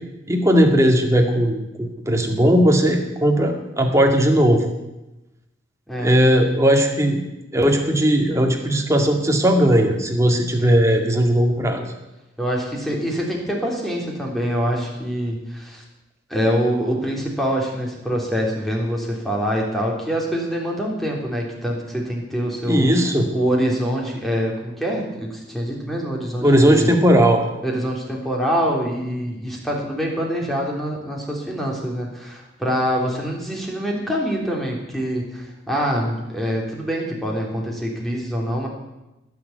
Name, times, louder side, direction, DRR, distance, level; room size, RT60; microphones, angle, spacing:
voice 1, 0.3-4.6 6.0-7.2 7.5-11.8 22.6-23.3 26.4-27.4, equal, 15° right, 2 dB, 2.2 m, -17 dB
voice 2, 10.6-11.1 12.4-15.8 16.3-22.9 23.3-26.9 27.6-38.7, equal, ahead, -2 dB, 3.5 m, -25 dB
19.5 x 7.2 x 9.4 m, 0.97 s
head